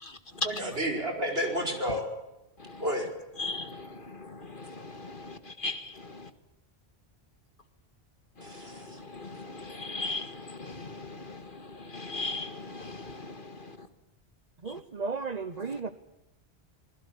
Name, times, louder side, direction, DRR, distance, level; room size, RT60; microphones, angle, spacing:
voice 1, 0.4-2.1 2.8-3.1 8.4-9.0, equal, 65° right, 4 dB, 5.4 m, -31 dB
voice 2, 3.4-3.9 4.3-5.9 9.1-11.4 11.9-13.3, left 3 dB, 50° left, 10 dB, 2.1 m, -38 dB
voice 3, 14.6-15.9, right 4 dB, 40° right, 12 dB, 1.1 m, -34 dB
24.5 x 20.5 x 8.6 m, 0.95 s
omnidirectional pair, 1.1 m